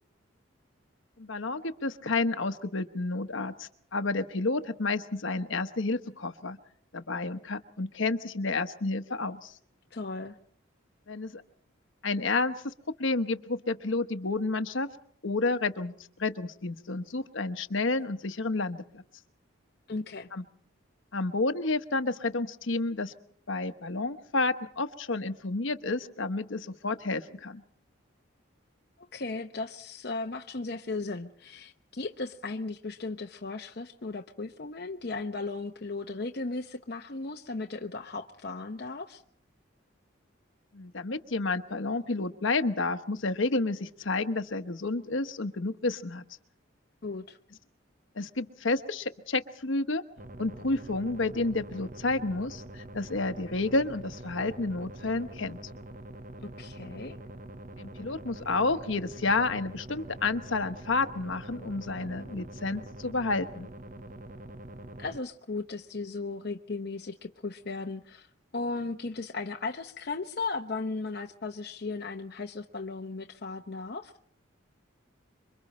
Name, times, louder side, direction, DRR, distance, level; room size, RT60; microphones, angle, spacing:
voice 1, 1.2-6.6 6.9-9.5 11.1-11.4 12.0-12.7 13.0-14.9 15.2-15.9 16.2-19.0 20.3-20.4 21.1-23.1 23.5-27.6 40.7-46.2 48.2-50.0 50.4-55.6 57.8-63.7, left 3 dB, 75° left, 9 dB, 1.1 m, -30 dB
voice 2, 9.9-10.4 19.9-20.3 29.1-39.2 47.0-47.4 56.4-57.2 65.0-68.3 68.5-74.1, left 3 dB, 50° left, 3 dB, 0.8 m, -36 dB
sound 1, 50.2-65.2, right 1 dB, 40° right, 0.8 m, -45 dB
27.0 x 24.0 x 4.3 m, 0.62 s
head